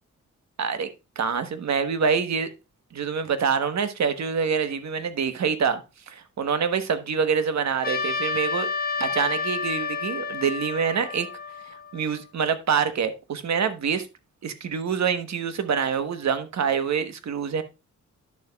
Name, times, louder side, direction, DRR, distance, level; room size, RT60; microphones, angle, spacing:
voice 1, 0.6-0.9 1.2-2.5 2.9-5.8 6.1-8.7 9.0-11.3 11.9-14.1 14.4-17.6, right 6 dB, 65° right, 1.1 m, -26 dB
Trumpet, 7.8-12.3, left 4 dB, 30° left, 1.3 m, -30 dB
11.0 x 6.7 x 2.3 m
cardioid pair, 90°, 30 cm